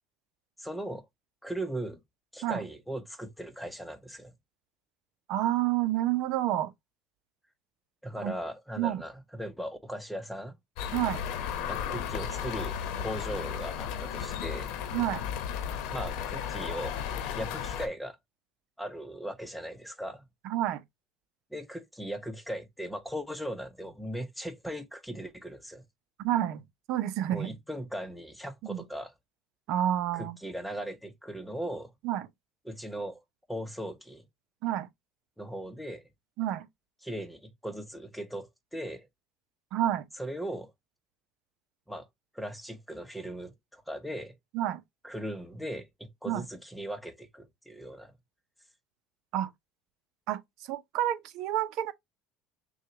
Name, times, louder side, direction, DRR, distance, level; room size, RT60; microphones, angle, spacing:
voice 1, 0.6-1.1 1.4-2.0 2.3-4.3 8.0-10.6 11.7-14.7 15.9-17.0 17.3-18.2 18.8-20.2 21.5-25.8 27.3-29.1 30.1-31.9 32.6-33.2 33.5-34.2 35.4-36.1 37.0-39.1 40.2-40.7 41.9-42.1 42.3-44.3 45.0-48.1, equal, ahead, 0.9 m, -38 dB
voice 2, 5.3-6.7 8.2-8.3 8.8-9.0 10.9-11.2 14.9-15.2 20.4-20.8 26.2-27.5 28.7-28.8 29.7-30.4 32.0-32.3 34.6-34.9 36.4-36.7 39.7-40.1 44.5-44.8 46.3-46.4 49.3-49.5 50.3-50.4 50.7-51.9, right 12 dB, 65° right, 0.8 m, -29 dB
sound 1, 10.8-17.9, left 8 dB, 70° left, 1.0 m, -34 dB
6.3 x 2.4 x 2.9 m
supercardioid pair, 120°, 0 cm